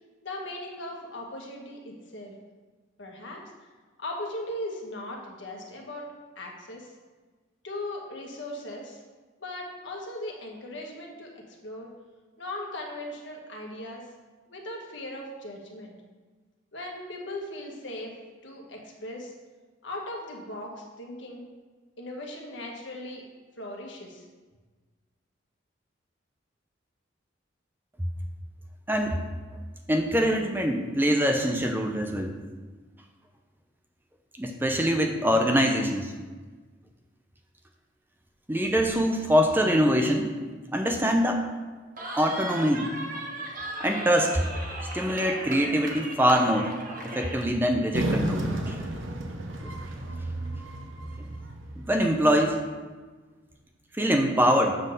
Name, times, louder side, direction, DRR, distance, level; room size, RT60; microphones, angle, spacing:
voice 1, 0.2-2.3 3.0-3.4 4.0-6.9 7.6-9.0 9.4-11.9 12.4-14.1 14.5-15.9 16.7-18.1 18.4-19.3 19.8-21.4 22.0-23.2 23.6-24.2, left 1 dB, 70° left, 0 dB, 1.4 m, -38 dB
voice 2, 29.9-32.3 34.4-36.1 38.5-40.3 40.7-41.4 42.2-42.9 43.8-44.4 44.9-46.7 47.0-48.8 49.6-49.7 51.8-52.6 53.9-54.8, equal, 10° right, 3 dB, 0.5 m, -24 dB
Cheering, 42.0-47.5, right 1 dB, 45° right, 1.0 m, -37 dB
sound 1, 47.9-52.5, right 1 dB, 80° right, 0.9 m, -32 dB
7.4 x 4.0 x 6.5 m, 1.4 s
head